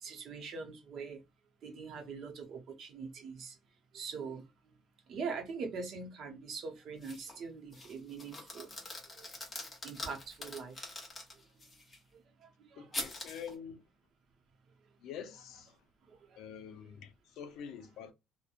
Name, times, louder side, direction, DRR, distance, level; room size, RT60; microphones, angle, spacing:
voice 1, 0.0-1.2 1.6-3.6 3.9-4.4 5.1-8.7 9.1-9.4 9.8-10.9 12.4-12.9 16.1-16.4, right 5 dB, 45° right, 0.7 m, -43 dB
sound 1, 7.0-7.4 7.7-12.0 12.9-13.5, left 2 dB, 20° left, 0.8 m, -44 dB
voice 2, 12.8-13.8 15.0-15.8 16.4-18.1, left 7 dB, 65° left, 0.5 m, -46 dB
2.8 x 2.1 x 2.4 m
cardioid pair, 175°, 0 cm